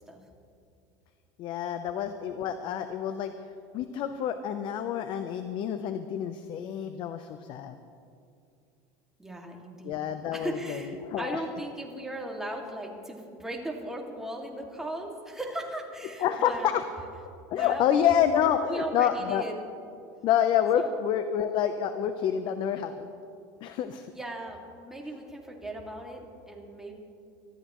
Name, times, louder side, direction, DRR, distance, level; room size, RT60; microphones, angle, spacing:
voice 1, 1.4-3.3 3.7-7.8 9.8-11.4 16.2-16.8 17.5-19.4 20.2-23.1 23.6-24.1, left 9 dB, 50° left, 9 dB, 0.8 m, -28 dB
voice 2, 9.2-16.7 17.5-18.4 18.7-19.5 20.7-20.9 24.1-26.9, right 1 dB, 5° right, -1 dB, 2.3 m, -37 dB
24.5 x 13.0 x 3.1 m, 2.5 s
supercardioid pair, 120°, 10 cm